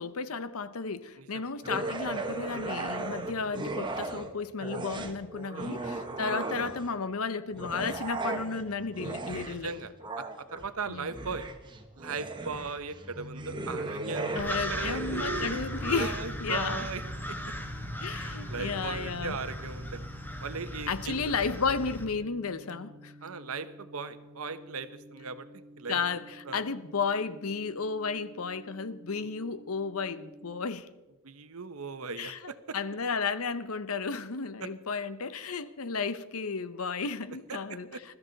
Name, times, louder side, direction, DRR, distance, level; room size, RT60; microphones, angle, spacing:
voice 1, 0.0-9.7 10.9-11.1 14.3-16.9 18.0-19.4 20.9-23.1 25.9-30.9 32.2-32.4 32.7-37.9, left 5 dB, 75° left, 0.8 m, -33 dB
sound 1, 1.6-4.3 4.6-7.0 7.5-16.1, right 2 dB, 20° right, 1.3 m, -37 dB
voice 2, 9.5-11.4 12.0-15.5 15.9-17.0 17.3-17.4 18.2-20.0 20.4-21.3 23.2-25.5 25.8-26.0 26.4-26.6 29.1-29.3 31.2-32.8 34.6-34.7 37.5-38.0, right 5 dB, 75° right, 1.0 m, -38 dB
sound 2, 13.1-30.7, left 1 dB, 55° right, 1.1 m, -49 dB
sound 3, 14.4-22.0, equal, 10° left, 1.4 m, -37 dB
21.0 x 13.5 x 4.0 m
head